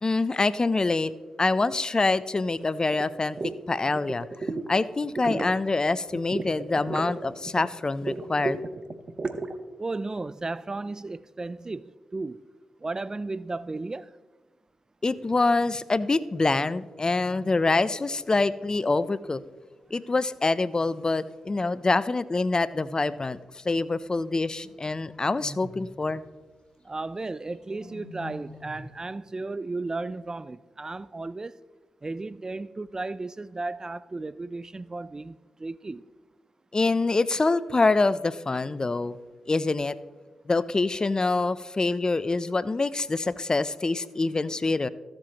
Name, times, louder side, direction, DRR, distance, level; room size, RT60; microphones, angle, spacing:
voice 1, 0.0-1.1 1.4-3.4 3.7-4.3 4.7-8.6 15.0-19.4 19.9-23.4 23.6-26.2 36.7-39.2 39.5-40.0 40.5-44.9, left 3 dB, 35° left, 0.5 m, -25 dB
sound 1, 2.9-3.1 3.4-3.6 3.9-4.7 5.0-5.6 6.2-7.7 8.0-9.6, right 3 dB, 50° right, 0.8 m, -33 dB
voice 2, 9.8-12.4 12.8-14.1 26.8-31.6 32.0-36.0, right 3 dB, 30° right, 0.3 m, -34 dB
sound 2, 22.4-23.3 24.6-25.9 27.3-28.9, left 1 dB, 55° left, 2.9 m, -46 dB
14.5 x 7.6 x 3.0 m
supercardioid pair, 40°, 2 cm